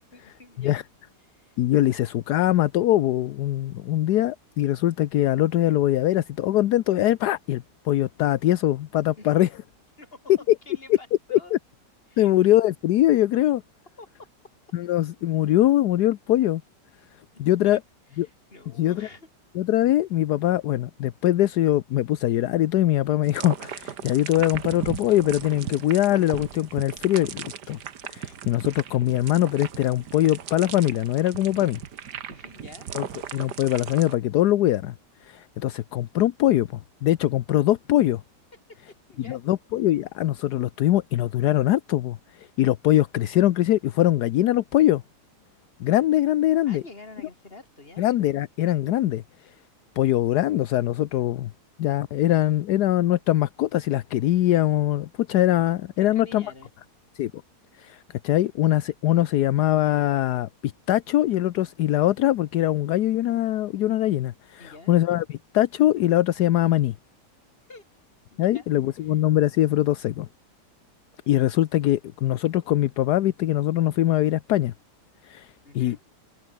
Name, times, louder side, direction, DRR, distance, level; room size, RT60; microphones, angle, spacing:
voice 1, 0.1-0.8 1.2-1.6 9.2-9.5 10.0-10.3 10.7-11.6 12.1-12.3 14.0-14.3 17.6-17.8 18.1-19.3 32.3-32.9 38.7-39.4 46.6-48.1 56.0-56.7 64.6-65.0 67.7-67.9 68.3-68.7 69.0-69.2 75.6-76.1, left 2 dB, 35° left, 3.7 m, -47 dB
voice 2, 1.6-9.5 11.3-11.6 12.2-13.6 14.7-16.6 17.4-17.8 18.2-18.3 18.8-19.1 19.5-27.8 28.0-31.8 32.9-33.0 33.3-34.9 35.2-38.2 39.3-45.0 45.8-46.8 48.0-49.2 50.0-51.5 51.8-56.4 57.2-57.3 57.8-66.9 68.4-70.3 71.3-74.7 75.2-76.0, left 13 dB, 75° left, 1.3 m, -22 dB
sound 1, 23.2-34.2, right 9 dB, 75° right, 1.9 m, -37 dB
omnidirectional pair, 1.8 m